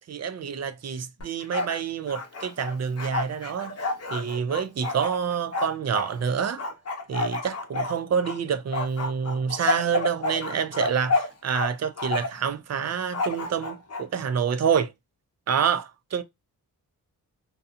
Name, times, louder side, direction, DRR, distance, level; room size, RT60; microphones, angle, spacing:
voice 1, 0.1-3.8 4.1-6.6 7.1-14.9 15.5-16.2, right 7 dB, 45° right, 0.4 m, -27 dB
Bark, 1.2-1.8 2.1-6.1 6.6-8.4 8.7-11.7 12.0-12.5 13.1-14.0, left 3 dB, 40° left, 0.7 m, -29 dB
2.7 x 2.2 x 2.4 m
wide cardioid pair, 140°, 38 cm